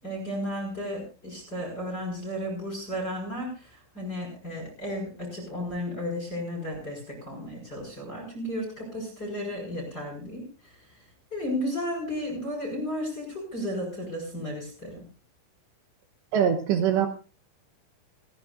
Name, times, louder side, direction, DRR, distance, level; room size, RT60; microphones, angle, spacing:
voice 1, 0.0-10.7 11.3-15.0, equal, 20° left, -1 dB, 5.8 m, -34 dB
voice 2, 16.3-17.1, right 8 dB, 70° right, 7 dB, 2.9 m, -22 dB
29.5 x 10.5 x 2.6 m, 0.35 s
omnidirectional pair, 5.9 m